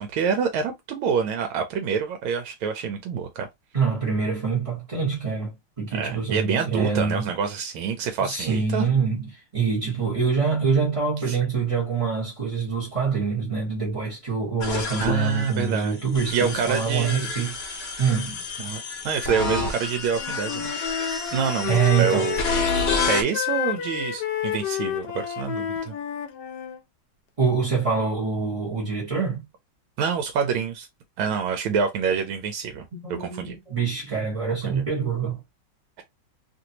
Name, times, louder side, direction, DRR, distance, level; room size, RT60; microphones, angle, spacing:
voice 1, 0.0-3.5 5.9-8.9 11.3-11.4 15.0-16.0 16.3-17.3 18.6-20.7 21.3-22.4 23.1-25.9 30.0-30.9 31.2-32.9 33.2-33.6 34.7-34.8, right 6 dB, 80° right, 1.4 m, -26 dB
voice 2, 3.7-7.3 8.2-17.6 18.0-18.4 21.7-22.3 27.4-29.4 32.9-35.4, right 5 dB, 25° right, 0.7 m, -25 dB
sound 1, 14.6-23.2, left 4 dB, 45° left, 0.9 m, -29 dB
Wind instrument woodwind instrument, 20.0-26.8, left 10 dB, 70° left, 1.1 m, -30 dB
3.3 x 2.6 x 2.8 m
omnidirectional pair, 2.2 m